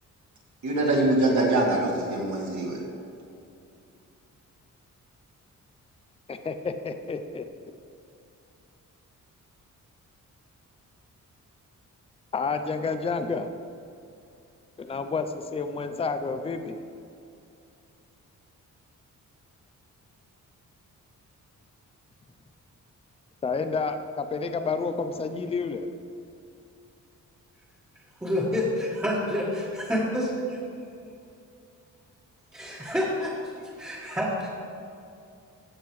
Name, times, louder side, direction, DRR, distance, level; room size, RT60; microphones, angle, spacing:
voice 1, 0.6-2.8, right 2 dB, 60° right, -2 dB, 2.3 m, -24 dB
voice 2, 6.3-7.5 12.3-13.5 14.8-16.8 23.4-25.9, left 4 dB, 20° left, 8 dB, 0.5 m, -30 dB
voice 3, 28.2-30.6 32.5-33.5 33.8-34.5, left 1 dB, 10° right, -7 dB, 1.6 m, -28 dB
15.5 x 7.9 x 3.2 m, 2.6 s
wide cardioid pair, 150°, 32 cm